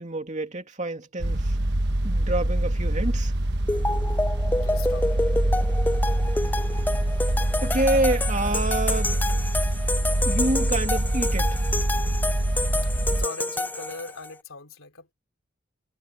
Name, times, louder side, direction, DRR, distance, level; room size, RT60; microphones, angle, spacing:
voice 1, 0.0-1.6 2.0-3.3 7.6-9.2 10.2-11.6, right 2 dB, 35° right, 2.5 m, -27 dB
sound 1, 1.2-13.3, right 1 dB, 55° right, 1.3 m, -25 dB
sound 2, 3.7-14.3, left 2 dB, 10° left, 0.4 m, -29 dB
voice 2, 4.6-5.1 12.8-15.1, left 3 dB, 80° left, 3.1 m, -40 dB
head